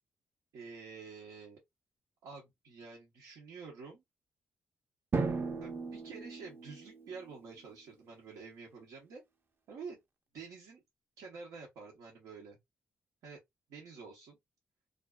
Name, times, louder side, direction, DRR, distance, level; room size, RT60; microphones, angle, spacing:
voice 1, 0.5-1.6 2.2-4.0 5.6-9.2 9.7-10.0 10.3-10.8 11.2-12.6 13.2-13.4 13.7-14.4, right 5 dB, 90° right, 0.7 m, -49 dB
Drum, 5.1-7.6, right 4 dB, 40° right, 0.6 m, -36 dB
2.5 x 2.3 x 2.2 m
cardioid pair, 70°, 6 cm